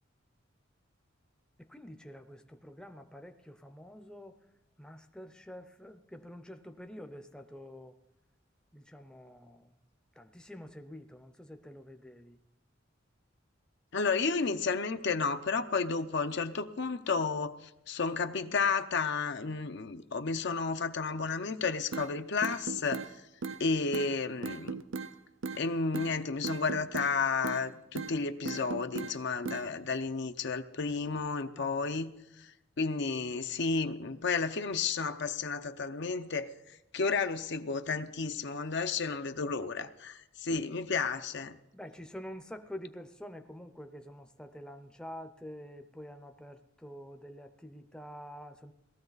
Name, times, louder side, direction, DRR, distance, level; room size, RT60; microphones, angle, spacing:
voice 1, 1.6-4.4 4.8-7.9 8.7-9.7 10.2-12.4 31.6-31.9 41.7-48.7, equal, 5° left, 7 dB, 0.6 m, -47 dB
voice 2, 13.9-23.1 23.6-24.8 25.6-32.5 32.8-36.5 36.9-41.6, left 4 dB, 60° left, 9 dB, 0.7 m, -32 dB
sound 1, 21.9-22.1 22.4-23.1 23.4-23.6 23.9-24.1 24.4-25.1 25.4-25.6 25.9-26.1 26.4-27.1 27.4-27.6 27.9-28.1 28.4-29.1 29.4-29.6, right 4 dB, 85° right, 0.7 m, -37 dB
18.5 x 14.0 x 4.0 m, 0.89 s
head